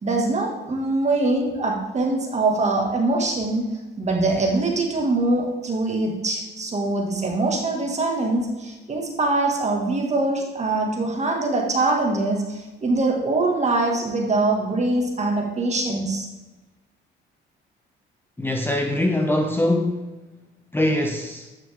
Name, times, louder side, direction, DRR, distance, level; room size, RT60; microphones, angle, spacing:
voice 1, 0.0-3.7 4.0-16.3, right 2 dB, 35° right, 0 dB, 2.1 m, -23 dB
voice 2, 18.4-20.1 20.7-21.5, left 1 dB, 10° left, 3 dB, 0.7 m, -23 dB
10.0 x 6.0 x 3.6 m, 1.1 s
cardioid pair, 105°, 21 cm